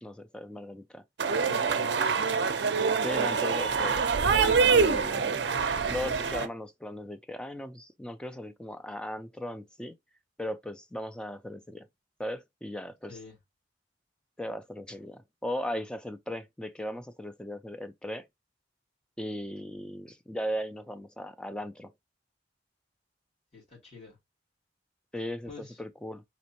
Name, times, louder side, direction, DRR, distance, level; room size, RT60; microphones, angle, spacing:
voice 1, 0.0-1.0 1.5-1.6 3.0-5.5 5.9-10.0 10.4-11.9 12.2-13.2 14.4-18.3 19.2-21.9 25.1-25.5 25.8-26.2, left 1 dB, 5° left, 0.3 m, -37 dB
sound 1, 1.2-6.5, right 5 dB, 65° right, 0.5 m, -25 dB
voice 2, 1.5-2.3 13.1-13.4 23.5-24.2 25.5-25.8, left 4 dB, 35° left, 2.7 m, -47 dB
4.2 x 3.0 x 2.8 m
head